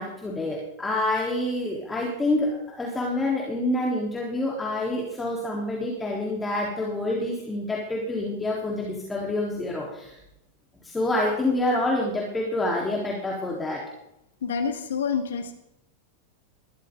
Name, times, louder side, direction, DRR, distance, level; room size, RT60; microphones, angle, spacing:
voice 1, 0.0-10.2 10.8-13.8, left 1 dB, 10° left, -2 dB, 3.6 m, -27 dB
voice 2, 14.4-15.5, left 6 dB, 65° left, 7 dB, 2.0 m, -27 dB
21.5 x 14.0 x 3.8 m, 0.83 s
figure-of-eight pair, 90°, 0 cm